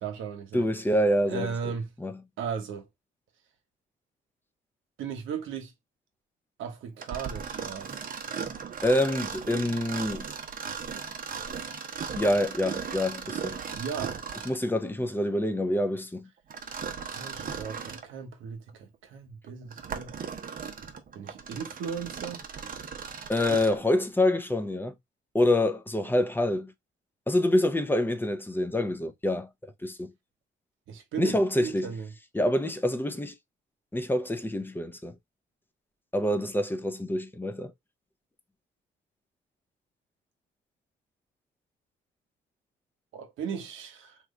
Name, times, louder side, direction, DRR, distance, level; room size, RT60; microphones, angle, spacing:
voice 1, 0.0-0.7 1.3-1.9 2.4-2.9 5.0-5.7 6.6-8.0 13.7-14.2 17.1-20.2 21.1-22.4 30.9-32.1 43.1-44.2, right 6 dB, 85° right, 1.0 m, -36 dB
voice 2, 0.5-1.5 2.0-2.1 8.8-10.3 12.2-13.6 14.5-16.3 23.3-24.9 25.3-26.7 27.3-29.5 29.8-30.1 31.2-31.9 32.3-33.3 33.9-35.1 36.1-37.7, left 1 dB, 10° left, 0.6 m, -26 dB
Mechanisms, 7.0-14.7 16.5-18.1 18.7-18.8 19.5-23.8, right 6 dB, 45° right, 0.8 m, -37 dB
3.0 x 2.3 x 3.6 m
cardioid pair, 90°, 20 cm